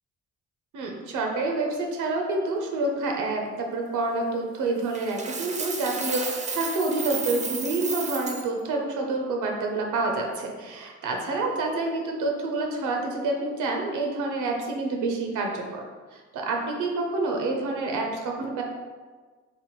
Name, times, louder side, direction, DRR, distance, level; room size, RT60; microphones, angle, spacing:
voice 1, 0.7-15.8 16.1-18.6, right 2 dB, 80° right, 1 dB, 0.6 m, -28 dB
Coin (dropping), 4.9-8.4, right 4 dB, 25° right, 0.4 m, -33 dB
3.4 x 2.1 x 3.0 m, 1.4 s
cardioid pair, 90°, 30 cm